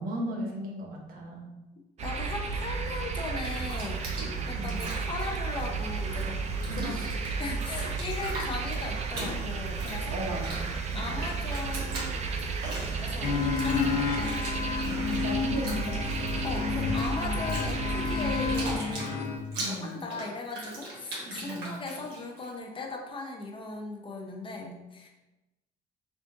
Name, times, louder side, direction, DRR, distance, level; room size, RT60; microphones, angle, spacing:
voice 1, 0.0-1.5 4.5-4.9 6.7-7.1 10.1-10.7 10.9-11.2 14.8-16.3 19.6-20.0 21.3-21.8, equal, 60° right, -1 dB, 1.0 m, -36 dB
voice 2, 2.0-6.4 6.7-7.0 7.4-10.2 10.9-12.2 13.0-14.4 16.4-19.1 19.6-25.1, left 3 dB, 30° left, 1 dB, 0.6 m, -38 dB
sound 1, 2.0-18.8, right 4 dB, 40° right, 0.5 m, -33 dB
Bathtub (filling or washing), 3.2-6.2 6.5-22.5, right 1 dB, 75° right, 1.4 m, -41 dB
sound 2, 13.2-19.4, left 5 dB, 70° left, 0.7 m, -30 dB
3.8 x 2.4 x 3.6 m, 1.0 s
cardioid pair, 110°, 17 cm